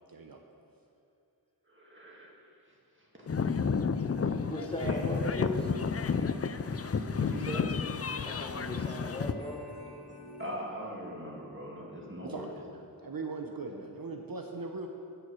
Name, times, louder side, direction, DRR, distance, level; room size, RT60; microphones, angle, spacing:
voice 1, 0.1-0.4 12.2-14.9, right 3 dB, 65° right, 3 dB, 0.7 m, -40 dB
voice 2, 1.7-2.3 3.2-3.3 4.8-5.0 7.1-7.6 10.4-12.6, equal, 30° right, -3 dB, 2.0 m, -40 dB
sound 1, 3.3-9.3, left 5 dB, 40° left, 0.4 m, -31 dB
voice 3, 4.4-5.7 8.2-9.6, left 1 dB, 15° left, -1 dB, 1.2 m, -37 dB
sound 2, 4.8-10.6, left 3 dB, 75° left, 1.0 m, -47 dB
8.7 x 6.7 x 6.2 m, 2.6 s
wide cardioid pair, 40°, 38 cm